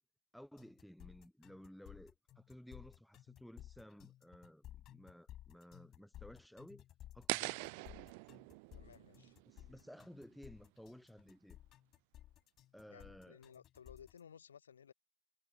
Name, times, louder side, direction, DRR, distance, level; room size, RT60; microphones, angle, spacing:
voice 1, 0.3-6.8 7.1-7.8 9.5-11.6 12.7-13.4, equal, ahead, 1.4 m, -56 dB
sound 1, 0.6-14.2, left 13 dB, 30° left, 1.1 m, -57 dB
sound 2, 7.3-10.3, right 32 dB, 45° right, 0.6 m, -43 dB
voice 2, 8.7-9.3 12.9-14.9, left 7 dB, 70° left, 7.9 m, -58 dB
figure-of-eight pair, 90°, 0 cm